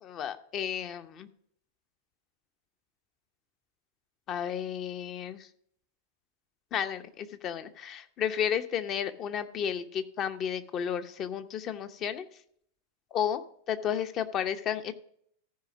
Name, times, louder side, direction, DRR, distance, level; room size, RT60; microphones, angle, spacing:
voice 1, 0.0-1.3 4.3-5.5 6.7-12.3 13.1-13.4 13.7-14.9, left 8 dB, 35° left, 9 dB, 0.7 m, -32 dB
14.5 x 4.9 x 5.0 m, 0.66 s
figure-of-eight pair, 90°, 0 cm